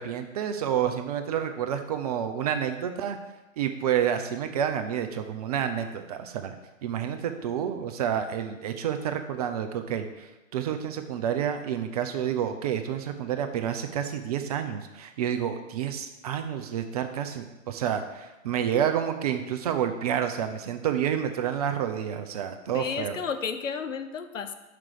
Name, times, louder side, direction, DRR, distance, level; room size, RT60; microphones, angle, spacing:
voice 1, 0.0-3.2 3.6-6.5 6.8-23.2, right 9 dB, 30° right, 7 dB, 0.6 m, -29 dB
voice 2, 22.7-24.5, left 6 dB, 70° left, 9 dB, 0.9 m, -32 dB
6.1 x 6.0 x 6.6 m, 1.0 s
figure-of-eight pair, 120°, 40 cm